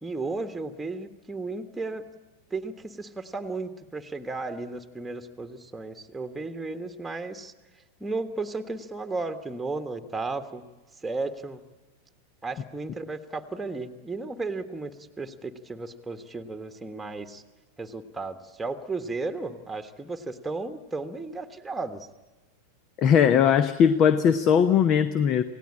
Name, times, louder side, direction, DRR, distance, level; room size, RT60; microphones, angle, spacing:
voice 1, 0.0-2.0 2.5-7.5 8.0-10.6 11.0-11.6 12.4-17.4 17.8-22.1, right 3 dB, 5° right, 7 dB, 1.5 m, -34 dB
voice 2, 23.0-25.4, left 8 dB, 35° left, 13 dB, 0.9 m, -19 dB
27.5 x 18.0 x 8.7 m, 1.2 s
figure-of-eight pair, 90°, 0 cm